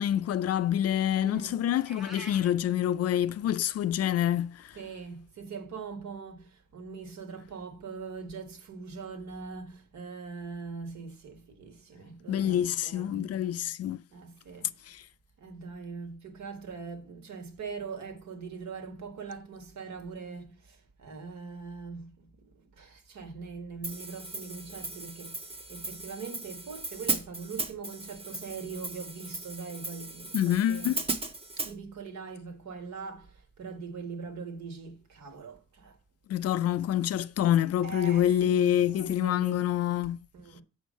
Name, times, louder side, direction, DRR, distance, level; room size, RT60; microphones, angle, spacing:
voice 1, 0.0-4.8 12.3-14.0 14.9-15.0 30.3-31.0 36.3-40.2, left 11 dB, 55° left, 0.4 m, -27 dB
voice 2, 1.2-1.6 4.8-13.3 14.1-14.8 15.4-31.0 31.6-36.0 37.8-39.7 40.3-40.6, right 5 dB, 70° right, 1.8 m, -42 dB
Meow, 1.7-2.5, equal, ahead, 1.2 m, -44 dB
Hi-hat, 23.8-31.7, right 2 dB, 20° right, 0.9 m, -37 dB
7.2 x 4.7 x 5.1 m
cardioid pair, 90°, 30 cm